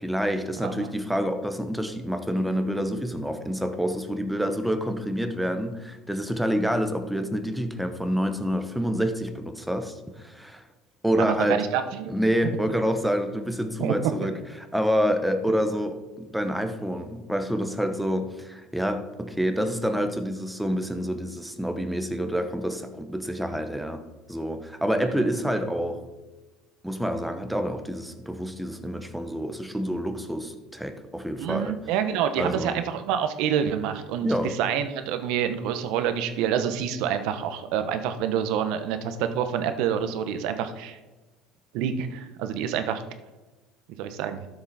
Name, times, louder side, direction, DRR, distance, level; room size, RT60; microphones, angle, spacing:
voice 1, 0.0-10.6 11.0-11.6 12.1-14.3 14.7-24.0 24.3-26.0 26.8-31.7 32.4-32.7 34.2-34.5, equal, ahead, 7 dB, 0.9 m, -27 dB
voice 2, 11.2-12.1 13.8-14.1 24.9-25.3 31.4-41.0 41.7-43.0 44.0-44.5, right 8 dB, 70° right, 9 dB, 1.0 m, -27 dB
12.5 x 7.0 x 4.1 m, 1.2 s
cardioid pair, 130°, 0 cm